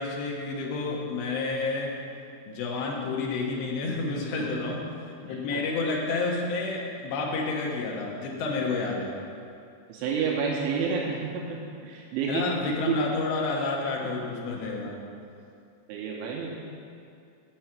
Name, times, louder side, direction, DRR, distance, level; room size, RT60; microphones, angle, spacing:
voice 1, 0.0-2.0 2.5-4.8 5.2-9.1 12.3-15.0, left 3 dB, 75° left, -1 dB, 3.1 m, -30 dB
voice 2, 4.4-4.8 5.2-5.6 9.9-12.5 12.8-13.0 15.9-16.5, right 6 dB, 85° right, -2 dB, 3.1 m, -30 dB
7.9 x 7.7 x 5.9 m, 2.5 s
omnidirectional pair, 5.5 m